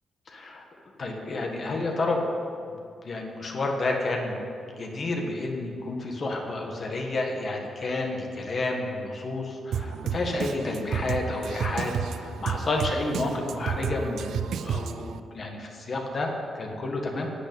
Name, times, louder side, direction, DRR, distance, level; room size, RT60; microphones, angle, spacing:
voice 1, 0.3-0.6 1.0-2.3 3.0-17.3, left 2 dB, 40° left, 1 dB, 1.6 m, -30 dB
Drum kit, 9.7-15.2, right 7 dB, 85° right, 0.4 m, -31 dB
10.0 x 8.5 x 8.4 m, 2.4 s
wide cardioid pair, 160°, 0 cm